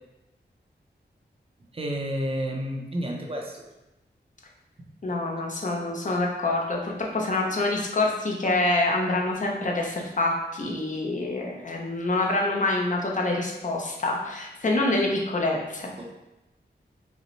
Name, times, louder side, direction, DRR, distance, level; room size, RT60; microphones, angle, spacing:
voice 1, 1.7-3.6 16.0-16.1, equal, 30° right, 0 dB, 0.6 m, -30 dB
voice 2, 5.0-15.9, left 2 dB, 45° left, -1 dB, 0.7 m, -26 dB
5.1 x 2.1 x 3.1 m, 0.97 s
wide cardioid pair, 110°, 18 cm